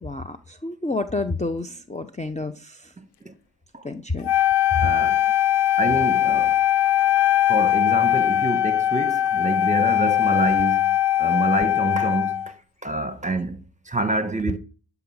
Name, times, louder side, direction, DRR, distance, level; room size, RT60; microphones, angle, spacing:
voice 1, 0.0-2.9 3.8-4.3 4.7-4.9, left 3 dB, 15° left, 0.7 m, -29 dB
voice 2, 3.0-3.3 3.7-3.9 4.8-5.3 5.8-6.6 7.5-12.5 12.8-14.6, right 2 dB, 15° right, 1.4 m, -27 dB
Wind instrument woodwind instrument, 4.2-12.5, left 12 dB, 60° left, 0.5 m, -20 dB
12.0 x 6.0 x 8.7 m
wide cardioid pair, 95°, 46 cm